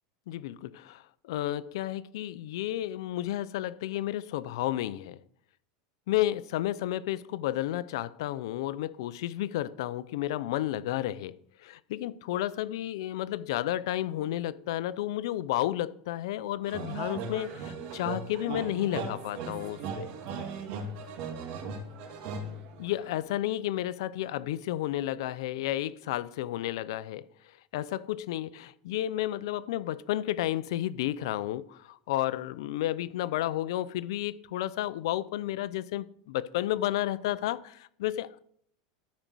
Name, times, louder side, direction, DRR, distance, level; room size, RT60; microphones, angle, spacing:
voice 1, 0.3-5.2 6.1-20.1 22.8-27.3 27.7-38.4, left 14 dB, 75° left, 0.6 m, -32 dB
sound 1, 16.6-23.2, right 4 dB, 55° right, 2.2 m, -38 dB
13.0 x 5.3 x 6.2 m
supercardioid pair, 145°, 3 cm